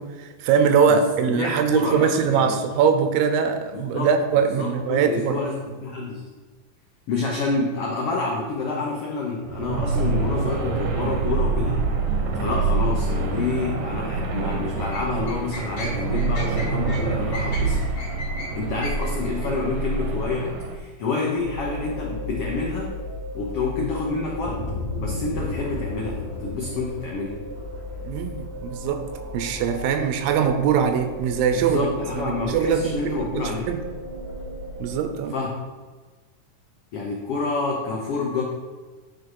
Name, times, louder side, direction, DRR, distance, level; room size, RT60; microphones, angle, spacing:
voice 1, 0.0-5.4 28.0-29.1 29.3-31.9 32.1-33.8 34.8-35.3, right 7 dB, 85° right, 8 dB, 2.5 m, -22 dB
voice 2, 0.9-2.6 3.7-6.2 7.1-11.9 12.3-17.9 18.5-22.9 23.3-24.6 25.0-27.5 31.5-33.7 35.3-35.5 36.9-38.4, left 3 dB, 85° left, -2 dB, 1.3 m, -28 dB
sound 1, 9.4-20.8, right 4 dB, 70° right, 1.9 m, -26 dB
sound 2, 14.5-19.5, left 1 dB, 45° left, 2.1 m, -36 dB
sound 3, 21.4-35.0, left 1 dB, 15° left, 1.1 m, -34 dB
9.8 x 4.4 x 4.7 m, 1.3 s
omnidirectional pair, 4.1 m